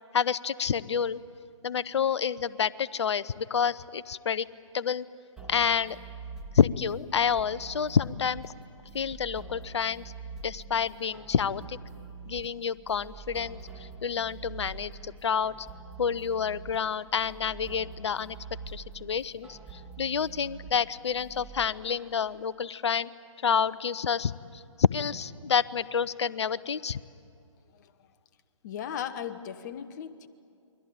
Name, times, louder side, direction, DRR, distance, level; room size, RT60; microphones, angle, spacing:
voice 1, 0.1-1.2 1.6-4.5 4.7-5.0 5.5-6.0 6.5-8.5 8.9-10.0 10.4-11.8 12.3-15.7 16.0-18.4 18.7-23.1 23.4-27.0, left 7 dB, 60° left, 18 dB, 0.7 m, -28 dB
sound 1, 5.4-21.7, right 4 dB, 5° right, 1.6 m, -45 dB
voice 2, 27.7-28.1 28.6-30.3, left 9 dB, 35° left, 11 dB, 1.1 m, -37 dB
28.0 x 22.5 x 8.8 m, 2.4 s
figure-of-eight pair, 135°, 16 cm